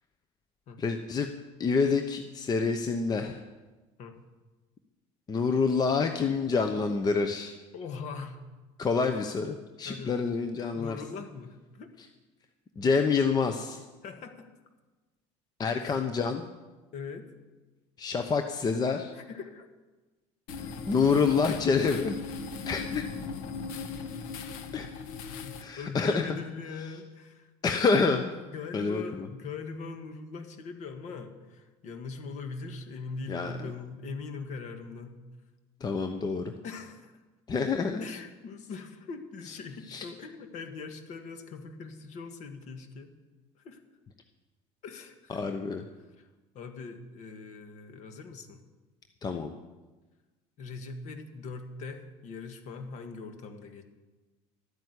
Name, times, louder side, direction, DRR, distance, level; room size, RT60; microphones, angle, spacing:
voice 1, 0.8-1.3 1.6-3.4 5.3-7.6 8.8-11.0 12.8-13.8 15.6-16.5 18.0-19.1 20.6-22.2 22.7-23.1 24.7-24.9 25.6-26.3 27.6-28.3 28.7-29.3 33.3-33.7 35.8-36.5 37.5-38.0 39.9-40.1 45.3-45.8 49.2-49.6, left 4 dB, 25° left, 7 dB, 0.9 m, -27 dB
voice 2, 7.7-8.4 9.8-10.2 10.7-11.9 14.0-14.5 15.8-16.1 16.9-17.3 19.1-19.7 25.8-27.5 28.5-35.2 36.6-37.2 38.0-43.1 43.6-43.8 44.8-45.5 46.2-46.3 46.5-48.6 50.6-53.8, left 4 dB, 55° left, 7 dB, 1.8 m, -41 dB
sound 1, 20.5-25.6, left 5 dB, 70° left, 1.4 m, -38 dB
12.5 x 9.2 x 8.2 m, 1.2 s
supercardioid pair, 115°, 15 cm